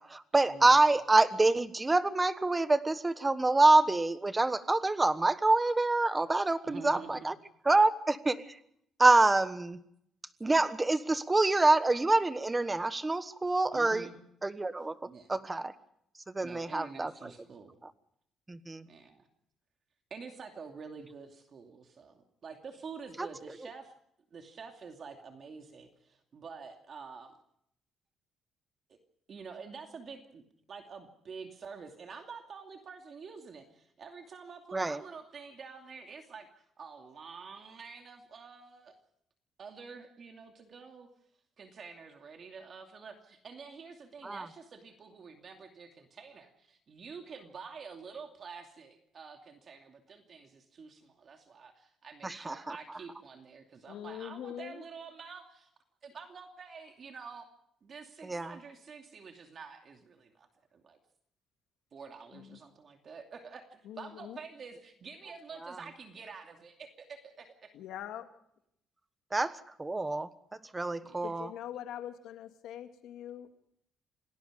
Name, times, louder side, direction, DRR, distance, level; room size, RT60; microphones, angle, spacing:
voice 1, 0.0-7.3 7.6-8.6 9.0-9.8 10.4-14.1 14.4-15.0 15.3-15.7 16.3-17.3 17.8-17.9 18.5-18.9 23.2-23.3 34.7-35.0 44.2-44.5 52.2-52.8 58.2-58.5 69.3-70.3 70.7-71.5, right 2 dB, 15° right, 13 dB, 1.2 m, -26 dB
voice 2, 6.7-7.3 13.7-14.2 15.0-15.4 16.4-17.8 18.9-19.3 20.1-23.9 24.3-27.4 28.9-29.0 29.3-30.4 30.7-39.0 39.6-41.1 41.6-55.7 56.0-57.5 57.8-61.0 61.9-67.7 71.0-71.3, right 5 dB, 40° right, 4 dB, 2.6 m, -48 dB
voice 3, 53.9-54.9 62.3-62.6 63.8-64.4 67.7-68.3 71.2-73.5, left 11 dB, 90° left, 6 dB, 2.5 m, -43 dB
28.5 x 19.0 x 5.1 m, 0.72 s
cardioid pair, 140°, 0 cm